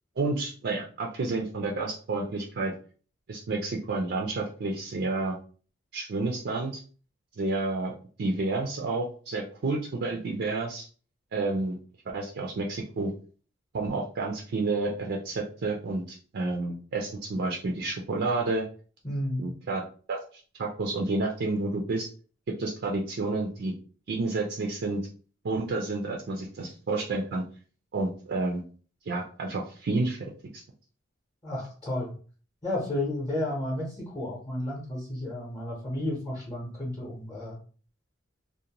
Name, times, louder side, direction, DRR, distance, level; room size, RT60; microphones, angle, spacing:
voice 1, 0.2-2.7 3.3-5.4 5.9-6.8 7.4-10.9 11.3-11.8 12.1-13.1 13.7-18.7 19.4-19.8 20.1-22.1 22.6-23.7 24.1-25.0 25.4-27.4 27.9-28.6 29.1-30.2 30.5-30.6, right 3 dB, 55° right, 0 dB, 0.4 m, -30 dB
voice 2, 19.0-19.5 31.4-32.1 32.6-37.6, left 1 dB, 20° left, -3 dB, 0.7 m, -32 dB
2.5 x 2.1 x 2.8 m, 0.41 s
head